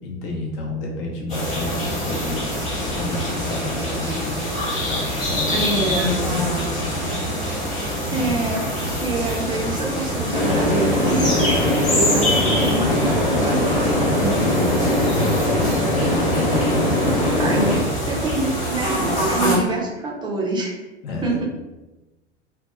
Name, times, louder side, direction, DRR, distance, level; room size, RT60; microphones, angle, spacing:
voice 1, 0.0-2.4 2.9-4.3 4.8-7.2 8.1-8.4 15.1-17.0 21.0-21.4, left 1 dB, 50° left, 0 dB, 0.7 m, -30 dB
sound 1, 1.3-19.6, equal, 25° left, 1.2 m, -25 dB
voice 2, 5.5-6.1 8.1-11.4 11.9-14.7 17.4-17.7 18.1-20.8 21.2-21.4, right 2 dB, 15° right, -3 dB, 0.4 m, -26 dB
sound 2, 10.3-17.8, left 1 dB, 70° left, 1.1 m, -21 dB
2.7 x 2.2 x 2.3 m, 1.1 s
figure-of-eight pair, 85°, 36 cm